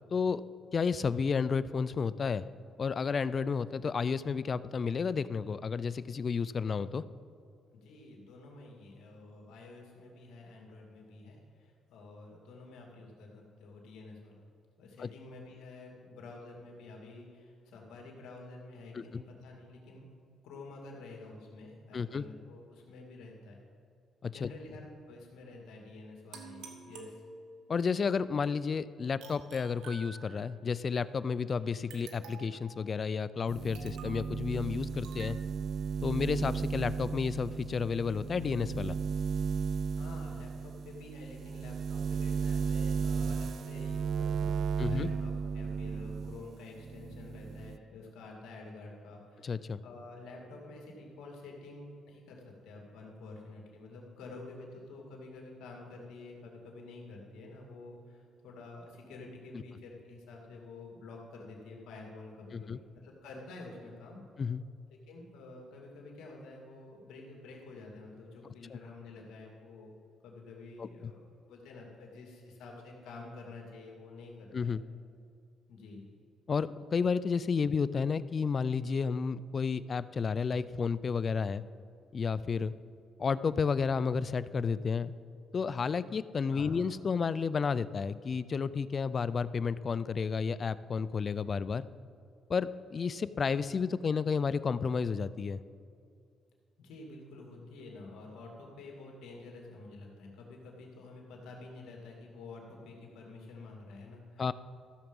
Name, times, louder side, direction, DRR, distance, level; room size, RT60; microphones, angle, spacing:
voice 1, 0.1-0.4 0.7-2.4 2.8-7.0 15.0-15.1 18.9-19.2 21.9-22.2 24.2-24.5 27.7-35.4 36.0-39.0 44.8-45.1 49.4-49.8 59.5-59.6 62.5-62.8 64.4-64.6 68.7-68.8 70.8-71.1 74.5-74.8 76.5-81.6 82.1-82.7 83.2-85.1 85.5-91.9 92.5-95.6 104.4-104.5, left 5 dB, 45° left, 17 dB, 0.4 m, -31 dB
voice 2, 7.7-14.4 14.8-20.1 20.4-23.6 24.3-27.2 39.9-49.5 49.8-62.7 63.0-64.2 64.9-69.9 70.2-74.7 75.7-76.0 86.5-86.7 96.8-104.4, left 3 dB, 85° left, 0 dB, 2.4 m, -49 dB
sound 1, 26.3-27.7 29.2-30.6 31.9-32.7 33.7-34.3 35.0-35.4, right 5 dB, 90° right, 1.4 m, -49 dB
sound 2, 33.5-46.4 46.8-47.8, right 6 dB, 60° right, 0.4 m, -35 dB
14.0 x 7.1 x 5.3 m, 2.4 s
cardioid pair, 90°, 0 cm